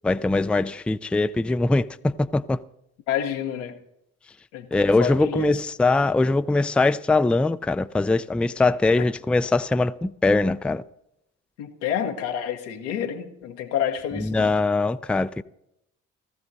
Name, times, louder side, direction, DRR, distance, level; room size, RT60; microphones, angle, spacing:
voice 1, 0.0-2.6 4.7-10.8 14.3-15.4, left 3 dB, 5° left, 0.4 m, -22 dB
voice 2, 3.1-3.8 4.5-5.5 9.0-9.1 11.6-14.5, left 9 dB, 85° left, 1.1 m, -29 dB
20.0 x 14.0 x 2.7 m
hypercardioid pair, 45°, 35 cm